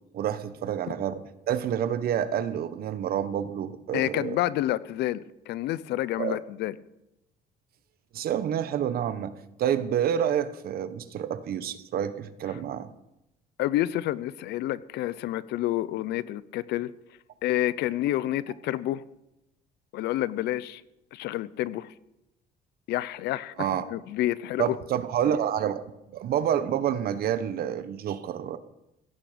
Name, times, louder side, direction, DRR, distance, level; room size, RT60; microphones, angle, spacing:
voice 1, 0.1-4.4 6.2-6.4 8.1-12.9 23.6-23.8 24.6-25.8 26.1-28.6, right 9 dB, 65° right, 13 dB, 1.2 m, -28 dB
voice 2, 3.9-6.7 13.6-16.9 17.4-19.0 19.9-20.8 21.1-21.9 22.9-24.8, left 14 dB, 80° left, 19 dB, 0.7 m, -29 dB
16.5 x 15.0 x 5.1 m, 0.89 s
cardioid pair, 110°, 17 cm